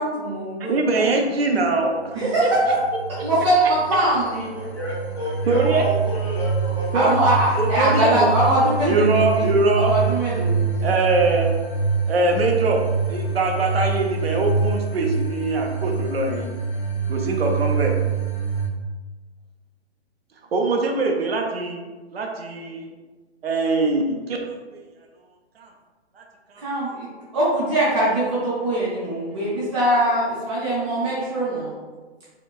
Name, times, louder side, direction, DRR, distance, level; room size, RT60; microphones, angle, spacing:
voice 1, 0.0-1.1 2.1-2.8 3.2-4.5 6.9-9.5 9.8-10.9 26.6-27.1 27.3-31.7, right 1 dB, 25° right, -9 dB, 0.7 m, -22 dB
voice 2, 0.7-2.5 5.5-5.9 6.9-7.2 7.6-8.3 8.8-9.9 10.8-11.5 12.1-12.8 13.1-16.5 17.1-17.9 20.5-22.9 23.4-24.4 24.7-24.8 25.6-25.7 26.2-26.3 26.5-26.6, right 3 dB, 60° right, 1 dB, 0.6 m, -22 dB
sound 1, 2.4-18.7, right 5 dB, 45° left, 0.9 m, -25 dB
voice 3, 4.5-7.0, equal, 25° left, -10 dB, 0.4 m, -29 dB
4.5 x 2.2 x 2.3 m, 1.3 s
hypercardioid pair, 150°, 34 cm